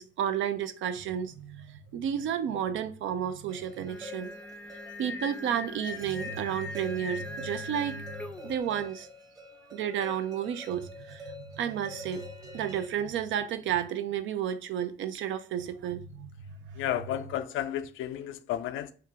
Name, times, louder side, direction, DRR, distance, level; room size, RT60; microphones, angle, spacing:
voice 1, 0.0-4.3 5.0-8.2 8.4-9.1 9.7-12.2 12.5-16.3 16.7-16.8, right 9 dB, 75° right, 0.5 m, -32 dB
sound 1, 3.5-12.9, left 2 dB, 20° right, 0.9 m, -46 dB
Singing, 3.9-8.6, left 2 dB, 5° left, 0.4 m, -41 dB
voice 2, 16.8-18.9, left 11 dB, 85° left, 0.4 m, -32 dB
4.3 x 2.5 x 3.4 m
cardioid pair, 90°, 20 cm